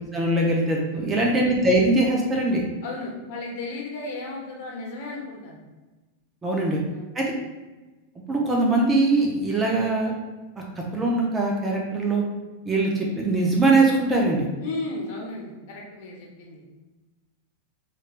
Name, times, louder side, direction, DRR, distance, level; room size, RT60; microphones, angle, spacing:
voice 1, 0.1-2.6 6.4-6.8 7.1-7.3 8.3-10.1 10.6-10.7 10.9-12.2 12.7-14.5, right 2 dB, 15° right, -1 dB, 0.4 m, -22 dB
voice 2, 0.9-1.3 2.8-5.6 6.5-7.3 14.6-16.7, left 2 dB, 55° left, -2 dB, 0.9 m, -35 dB
3.2 x 3.2 x 2.4 m, 1.2 s
supercardioid pair, 165°, 0 cm